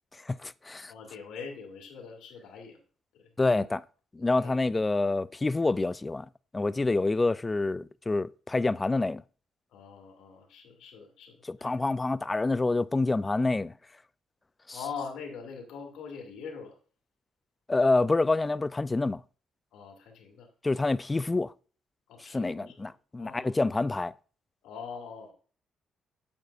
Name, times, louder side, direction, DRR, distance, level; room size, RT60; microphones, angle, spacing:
voice 1, 0.1-0.9 3.4-3.8 4.1-9.2 11.4-13.7 14.7-14.8 17.7-19.2 20.6-21.5 22.3-24.1, left 3 dB, 20° left, 0.3 m, -27 dB
voice 2, 0.9-2.8 3.1-3.7 4.3-4.6 6.8-6.9 9.7-11.8 14.7-16.8 19.7-20.5 22.1-22.9 23.2-23.6 24.6-25.3, left 6 dB, 80° left, 2.3 m, -43 dB
8.7 x 8.0 x 2.4 m
cardioid pair, 90°, 0 cm